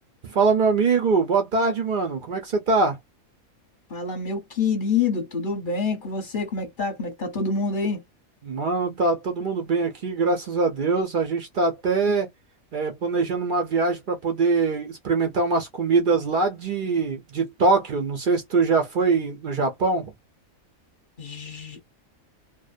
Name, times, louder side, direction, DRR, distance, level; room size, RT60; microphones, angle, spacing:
voice 1, 0.2-3.0 8.4-12.3 12.7-20.1, right 4 dB, 65° right, 0.5 m, -23 dB
voice 2, 3.9-8.0 21.2-21.8, left 4 dB, 40° left, 0.9 m, -27 dB
2.5 x 2.1 x 2.4 m
omnidirectional pair, 1.5 m